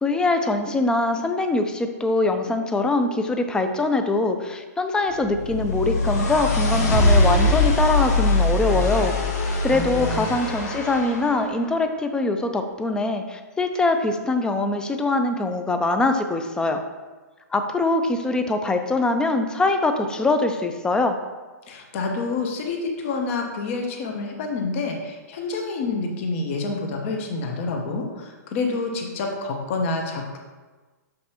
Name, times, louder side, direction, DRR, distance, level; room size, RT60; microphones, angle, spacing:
voice 1, 0.0-9.1 9.6-16.8 17.5-21.2, left 2 dB, 10° left, 7 dB, 0.5 m, -23 dB
sound 1, 5.2-11.3, left 2 dB, 65° left, 1.3 m, -22 dB
voice 2, 9.7-10.3 21.7-30.4, left 3 dB, 50° left, 3 dB, 1.1 m, -28 dB
6.5 x 5.2 x 3.0 m, 1.3 s
hypercardioid pair, 130°, 9 cm